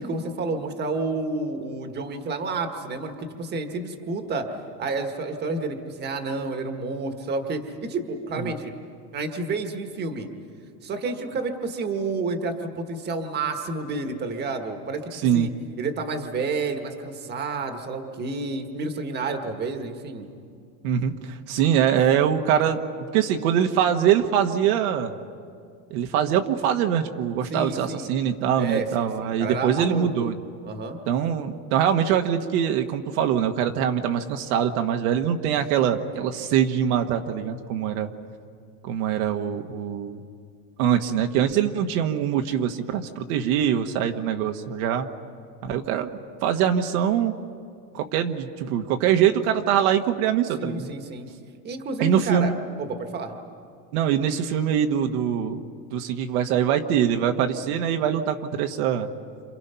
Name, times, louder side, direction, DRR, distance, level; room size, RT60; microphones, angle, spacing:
voice 1, 0.1-4.5 4.8-8.8 9.1-10.3 10.8-15.5 15.8-20.3 27.5-28.1 28.6-30.3 30.6-31.0 50.6-51.3 51.6-52.5 52.8-53.3, right 3 dB, 20° right, 6 dB, 1.5 m, -30 dB
voice 2, 15.1-15.5 20.8-22.8 23.1-25.1 25.9-30.3 31.1-38.1 38.8-40.2 40.8-45.1 45.6-46.1 46.4-47.3 47.9-50.9 52.0-52.5 53.9-55.6 55.9-59.1, right 9 dB, 60° right, 5 dB, 1.4 m, -23 dB
29.5 x 27.5 x 5.7 m, 2.3 s
supercardioid pair, 155°, 48 cm